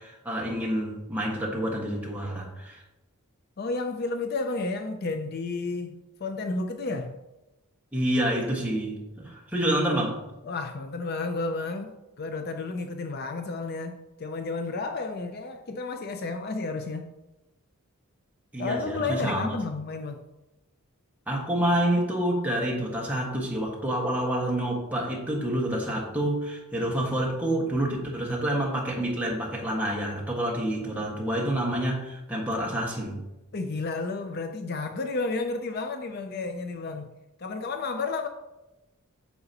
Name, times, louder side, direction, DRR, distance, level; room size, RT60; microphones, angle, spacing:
voice 1, 0.0-2.8 7.9-10.2 18.5-19.5 21.3-33.2, right 1 dB, 5° right, 1.5 m, -28 dB
voice 2, 3.6-7.2 10.4-17.1 18.6-20.2 33.5-37.1 37.4-38.3, left 3 dB, 45° left, 0.5 m, -32 dB
8.7 x 6.8 x 2.9 m
head